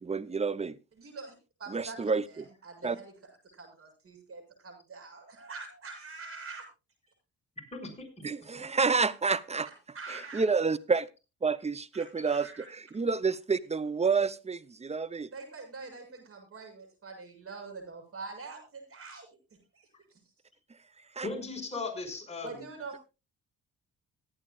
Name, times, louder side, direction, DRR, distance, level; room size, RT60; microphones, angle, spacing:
voice 1, 0.0-0.8 1.7-2.2 2.8-3.0 8.2-9.7 10.1-11.1 11.4-15.3 21.2-21.3, right 5 dB, 20° right, 18 dB, 0.6 m, -29 dB
voice 2, 1.0-3.1 3.5-6.7 9.7-10.4 11.9-12.7 15.3-19.3 19.7-20.3 22.4-23.0, right 4 dB, 50° right, 3 dB, 7.1 m, -45 dB
voice 3, 7.7-8.3 21.2-22.7, left 3 dB, 20° left, 1 dB, 5.3 m, -38 dB
25.5 x 8.8 x 2.3 m, 0.29 s
cardioid pair, 90°, 30 cm